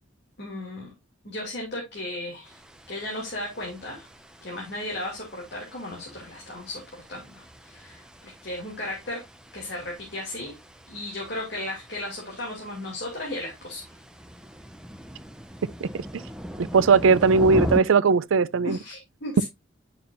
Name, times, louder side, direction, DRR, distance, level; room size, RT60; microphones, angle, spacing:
voice 1, 0.4-0.9 1.2-2.6 2.9-4.1 4.4-9.2 9.5-10.6 10.9-13.8 18.6-19.4, left 1 dB, 55° left, 2.6 m, -35 dB
sound 1, 2.4-17.8, equal, 5° right, 0.6 m, -38 dB
voice 2, 16.6-18.8, right 4 dB, 85° right, 0.4 m, -19 dB
9.3 x 6.0 x 2.5 m
head